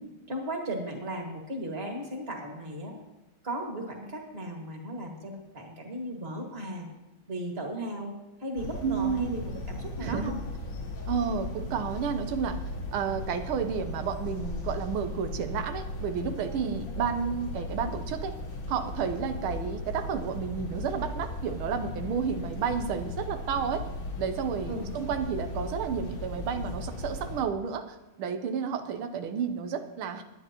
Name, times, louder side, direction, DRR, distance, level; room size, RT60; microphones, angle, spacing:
voice 1, 0.3-2.9 3.4-6.9 7.3-8.1 8.4-10.4 16.6-16.8 24.7-24.9, right 1 dB, 30° right, 1 dB, 2.2 m, -36 dB
sound 1, 8.6-27.4, left 2 dB, 75° left, 2.7 m, -37 dB
voice 2, 8.8-9.4 10.0-10.4 11.1-12.6 12.9-18.4 18.7-23.9 24.2-30.2, right 6 dB, 85° right, 8 dB, 1.7 m, -31 dB
20.5 x 9.9 x 3.0 m, 1.1 s
omnidirectional pair, 2.3 m